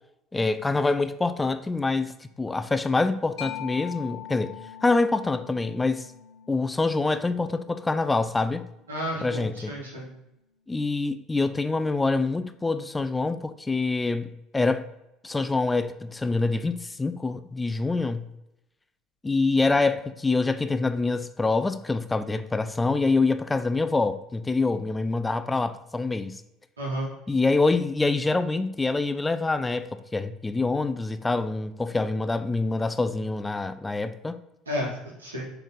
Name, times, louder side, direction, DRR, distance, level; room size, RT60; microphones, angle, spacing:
voice 1, 0.3-6.1 6.5-8.7 9.2-9.7 10.7-14.9 15.2-18.3 19.2-26.4 27.3-34.4, left 3 dB, 15° left, 0.4 m, -25 dB
Mallet percussion, 3.4-10.6, left 10 dB, 70° left, 0.8 m, -44 dB
voice 2, 8.9-10.1 26.8-27.1 34.7-35.4, equal, 90° right, 1.6 m, -32 dB
7.2 x 3.4 x 3.9 m
hypercardioid pair, 65°, 0 cm